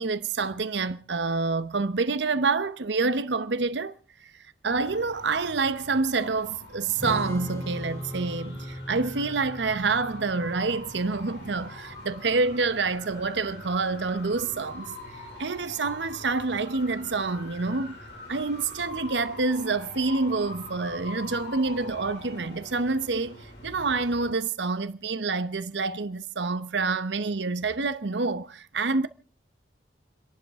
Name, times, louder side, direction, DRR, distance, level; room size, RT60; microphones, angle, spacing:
voice 1, 0.0-3.9 4.2-4.3 4.6-14.9 15.4-18.0 18.3-29.1, right 3 dB, 75° right, 0.9 m, -27 dB
sound 1, 4.7-24.3, left 1 dB, 70° left, 5.8 m, -44 dB
Strum, 7.0-13.2, equal, 15° left, 2.2 m, -39 dB
29.5 x 11.5 x 3.6 m
head